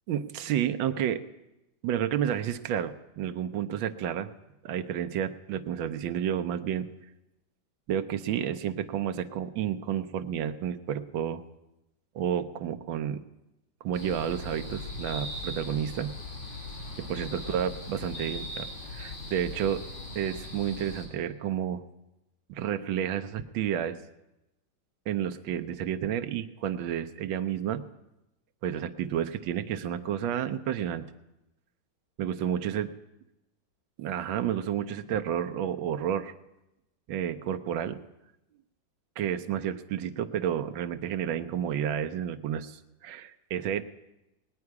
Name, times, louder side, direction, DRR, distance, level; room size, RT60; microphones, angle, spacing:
voice 1, 0.1-1.2 1.8-4.3 4.6-6.9 7.9-11.4 12.1-13.2 13.8-16.1 17.0-19.8 20.1-21.8 22.5-24.0 25.1-27.8 28.6-31.1 32.2-32.9 34.0-36.3 37.1-38.0 39.2-43.8, right 9 dB, 90° right, 8 dB, 1.5 m, -31 dB
sound 1, 13.9-21.0, left 2 dB, 90° left, 4.0 m, -39 dB
19.5 x 9.8 x 4.7 m, 0.94 s
omnidirectional pair, 2.1 m